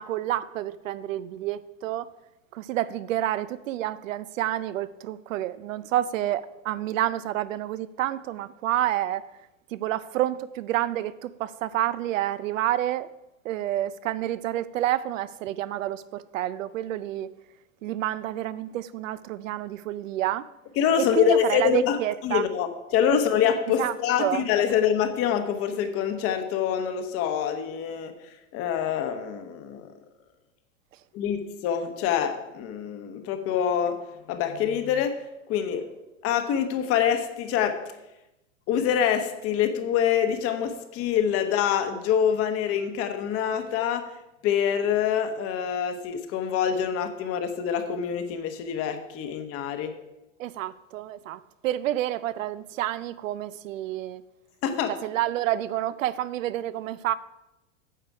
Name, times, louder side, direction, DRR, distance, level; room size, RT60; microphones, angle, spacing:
voice 1, 0.0-2.1 2.5-9.2 9.7-13.1 13.4-17.3 17.8-20.5 21.2-22.4 23.1-23.2 23.8-24.4 50.4-54.2 55.0-57.2, right 13 dB, 90° right, 0.6 m, -29 dB
voice 2, 20.8-29.9 31.1-34.0 34.3-35.9 36.2-37.8 38.7-44.1 44.4-50.0 54.6-55.0, left 8 dB, 35° left, 1.0 m, -25 dB
9.3 x 6.9 x 4.7 m
supercardioid pair, 130°, 38 cm